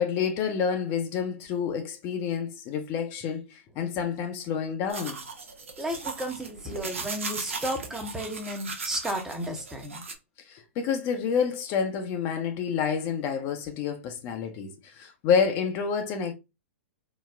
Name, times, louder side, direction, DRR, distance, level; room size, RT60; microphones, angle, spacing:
voice 1, 0.0-5.2 10.4-16.3, left 7 dB, 40° left, 0.6 m, -28 dB
sound 1, 4.9-10.1, right 4 dB, 75° right, 0.7 m, -37 dB
voice 2, 5.8-10.0, equal, 5° right, 0.7 m, -33 dB
3.8 x 2.0 x 2.4 m
figure-of-eight pair, 110°, 7 cm